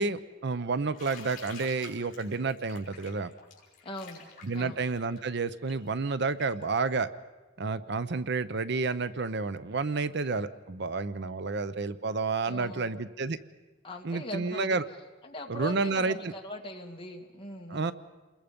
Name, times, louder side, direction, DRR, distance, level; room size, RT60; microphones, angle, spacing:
voice 1, 0.0-3.3 4.4-7.1 7.6-13.4 14.0-14.8 15.5-16.3 17.7-17.9, right 4 dB, 60° right, 14 dB, 0.7 m, -30 dB
Bathtub (filling or washing), 0.9-6.6, left 5 dB, 45° left, 5.0 m, -49 dB
voice 2, 3.8-4.3 4.5-4.8 12.4-12.9 13.8-14.8 15.2-17.9, equal, 25° left, 2 dB, 2.2 m, -40 dB
29.0 x 21.5 x 5.3 m, 1.2 s
head